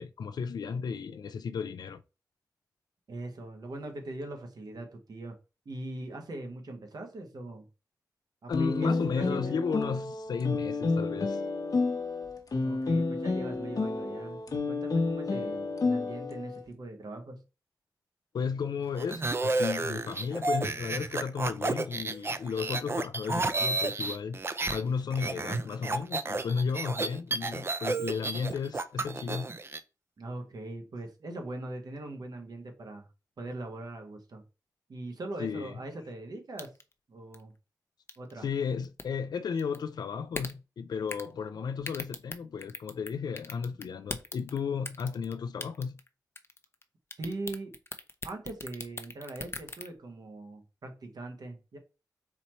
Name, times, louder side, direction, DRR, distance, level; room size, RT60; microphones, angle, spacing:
voice 1, 0.0-2.0 8.5-11.4 18.3-24.4 24.7-29.5 35.4-35.7 38.4-46.0, left 6 dB, 85° left, 0.3 m, -34 dB
voice 2, 3.1-5.4 5.6-7.7 8.4-9.5 12.6-17.4 30.2-33.1 33.4-34.4 34.9-36.7 37.1-37.5 38.2-38.5 47.2-47.7 48.2-51.8, right 2 dB, 75° right, 1.1 m, -41 dB
sound 1, 8.5-16.6, left 3 dB, 60° left, 0.9 m, -30 dB
sound 2, 19.0-24.8 25.1-29.8, right 3 dB, 35° right, 0.4 m, -31 dB
sound 3, 36.6-36.9 37.3-37.4 38.1-38.3 38.8-39.0 39.6-39.8 40.3-40.5 41.1-41.3 41.8-43.1 43.4-44.6 44.8-45.3 45.6-46.1 46.3-46.8 47.1-49.9, left 3 dB, 35° left, 0.6 m, -39 dB
4.0 x 3.1 x 4.3 m
wide cardioid pair, 80°, 7 cm